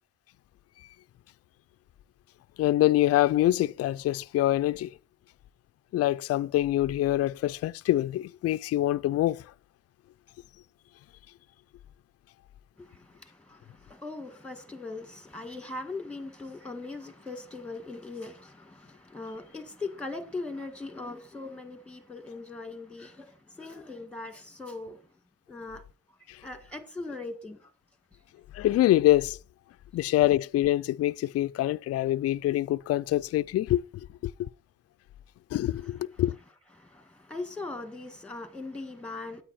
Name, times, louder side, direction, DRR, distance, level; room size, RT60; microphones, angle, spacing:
voice 1, 2.6-4.9 5.9-9.5 26.3-26.4 28.5-29.4 29.9-34.5 35.5-36.3, left 14 dB, 55° left, 0.4 m, -25 dB
voice 2, 12.8-25.0 25.5-25.8 26.4-27.7 36.7-39.4, left 3 dB, 5° left, 1.8 m, -40 dB
9.4 x 9.0 x 4.3 m
cardioid pair, 90°, 30 cm